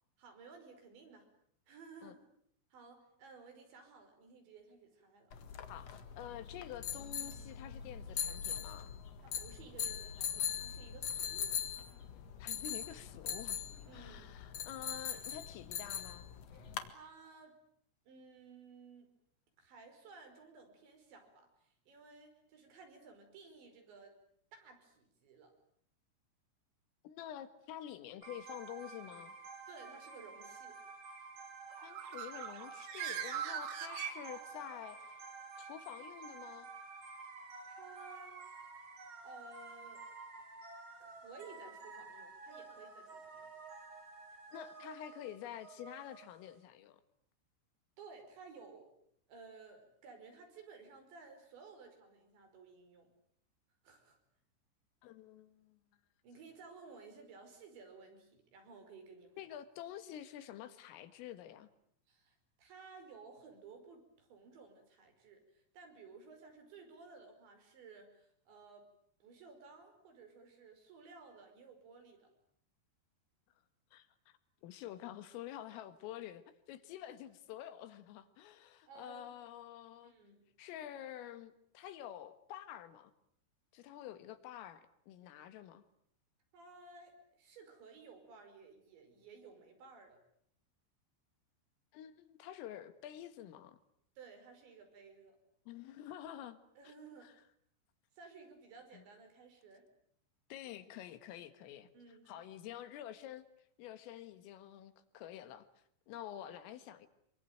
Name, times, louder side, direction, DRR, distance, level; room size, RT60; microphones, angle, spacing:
voice 1, 0.2-1.3 1.7-2.2 2.7-5.3 9.2-11.6 13.9-14.6 16.9-17.6 18.1-19.1 19.6-24.1 24.5-25.5 29.7-30.8 37.7-38.4 39.2-40.0 41.0-43.5 48.0-48.9 49.3-53.1 53.8-54.2 56.2-59.4 62.1-68.9 69.2-72.3 78.9-79.3 80.0-80.4 86.5-90.2 94.2-95.4 96.8-97.4 98.1-99.9 101.9-102.5, right 4 dB, 65° right, 5 dB, 7.5 m, -56 dB
sound 1, 5.3-16.9, left 8 dB, 65° left, 1.6 m, -41 dB
voice 2, 5.7-8.9 12.4-13.6 13.9-16.3 27.0-29.3 31.8-35.1 35.6-36.7 44.5-47.0 55.0-55.8 59.4-61.7 73.9-76.4 76.7-80.1 80.6-83.1 83.7-85.8 91.9-93.8 95.7-96.6 96.9-97.0 97.2-97.3 98.9-99.0 100.5-101.9 102.3-103.5 103.8-105.7 106.1-107.1, left 11 dB, 85° left, 11 dB, 4.3 m, -48 dB
sound 2, 28.2-46.6, right 4 dB, 30° right, 3.1 m, -51 dB
Bird, 31.7-34.8, right 9 dB, 85° right, 4.6 m, -41 dB
27.0 x 24.0 x 9.2 m, 0.68 s
omnidirectional pair, 5.7 m